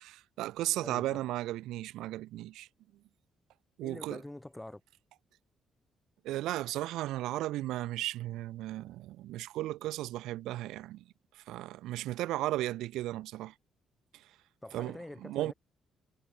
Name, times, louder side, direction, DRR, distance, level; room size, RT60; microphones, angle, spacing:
voice 1, 0.0-2.7 3.8-4.2 6.2-11.0 11.4-13.5 14.7-15.5, right 15 dB, 90° right, 0.3 m, -35 dB
voice 2, 0.8-1.2 3.8-4.8 14.6-15.5, left 1 dB, 10° left, 6.1 m, -45 dB
cardioid pair, 90°, 0 cm